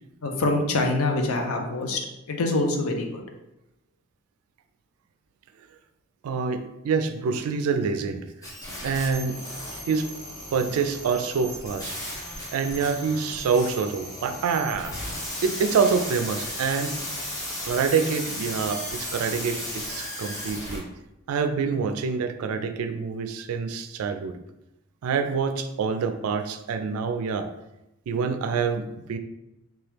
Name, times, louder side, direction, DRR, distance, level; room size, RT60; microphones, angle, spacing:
voice 1, 0.2-3.2, left 2 dB, 70° left, 3 dB, 0.5 m, -25 dB
voice 2, 6.2-8.5 8.8-9.4 9.7-10.1 10.5-12.0 12.5-15.0 15.4-17.0 17.6-20.8 21.3-24.4 25.0-27.5 28.1-29.2, right 5 dB, 75° right, 8 dB, 0.3 m, -26 dB
sound 1, 8.4-20.8, left 1 dB, 15° left, 0.7 m, -35 dB
2.9 x 2.3 x 3.2 m, 0.91 s
head